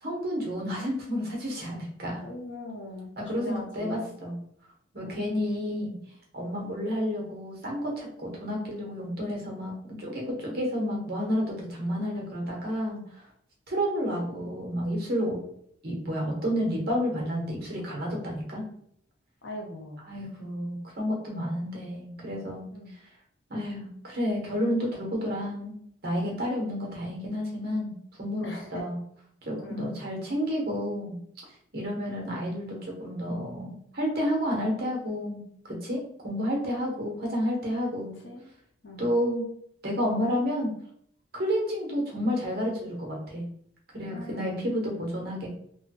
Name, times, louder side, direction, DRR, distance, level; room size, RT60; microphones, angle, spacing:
voice 1, 0.0-2.2 3.2-4.3 4.9-5.9 6.3-13.0 13.7-15.4 15.8-18.6 20.1-22.6 23.5-25.7 26.0-27.9 28.2-29.0 29.4-31.2 31.7-38.2 39.0-39.4 39.8-40.7 41.3-43.4 43.9-45.5, equal, 50° right, -1 dB, 0.9 m, -30 dB
voice 2, 2.2-4.1 5.0-5.4 14.3-14.6 19.4-20.0 22.7-23.0 28.4-28.9 29.6-29.9 38.2-38.4 38.8-39.1 44.1-44.7, left 1 dB, 60° left, 0 dB, 0.7 m, -41 dB
3.1 x 2.2 x 2.9 m, 0.67 s
head